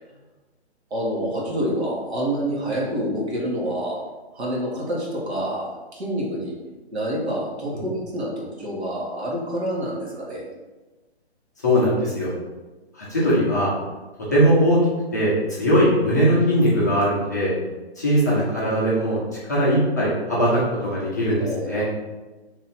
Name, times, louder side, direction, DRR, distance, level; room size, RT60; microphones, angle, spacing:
voice 1, 0.9-4.0 4.3-6.5 6.9-10.4 21.4-21.9, equal, 70° right, -4 dB, 1.4 m, -27 dB
voice 2, 11.6-12.3 12.9-13.7 14.3-14.8 15.1-17.5 18.0-19.2 19.5-21.8, equal, 15° left, -8 dB, 0.4 m, -20 dB
3.0 x 2.7 x 4.2 m, 1.2 s
hypercardioid pair, 150°, 34 cm